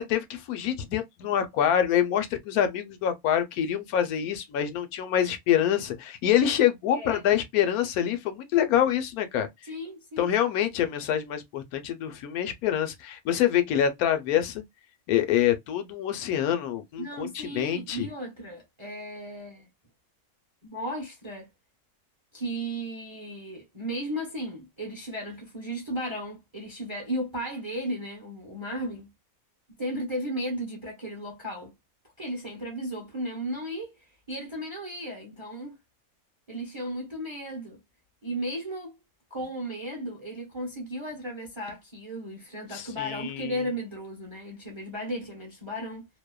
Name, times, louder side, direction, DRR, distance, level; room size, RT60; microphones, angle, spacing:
voice 1, 0.0-9.5 10.2-14.6 15.1-18.1 42.7-43.6, left 10 dB, 80° left, 1.1 m, -26 dB
voice 2, 6.9-7.2 9.7-10.3 17.0-19.7 20.6-21.5 22.3-29.1 29.8-31.7 32.2-35.8 36.5-37.8 38.2-39.0 39.3-46.1, equal, 25° right, 0.7 m, -35 dB
2.8 x 2.0 x 2.2 m
omnidirectional pair, 1.5 m